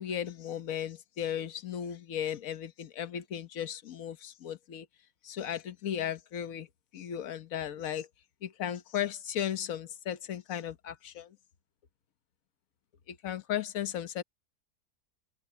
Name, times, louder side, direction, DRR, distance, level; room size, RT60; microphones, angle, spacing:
voice 1, 0.0-4.9 5.2-6.7 6.9-8.1 8.4-11.4 13.1-14.2, left 10 dB, 65° left, 1.4 m, -36 dB
omnidirectional pair, 1.6 m